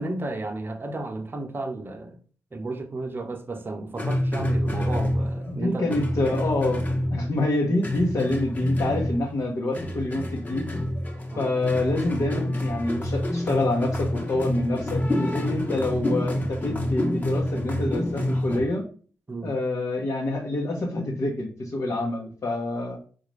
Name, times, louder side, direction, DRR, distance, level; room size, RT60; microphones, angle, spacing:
voice 1, 0.0-2.2 2.5-5.8 6.2-6.4 11.3-11.4 19.3-19.5, right 2 dB, 35° right, 0.8 m, -33 dB
sound 1, 4.0-5.6 5.9-7.5 7.8-9.4 9.7-18.6, left 1 dB, 30° left, 1.1 m, -27 dB
voice 2, 5.5-6.8 7.1-10.7 11.4-18.8 19.4-23.0, left 2 dB, 55° left, 0.9 m, -27 dB
4.0 x 2.4 x 3.1 m
supercardioid pair, 45°, 6 cm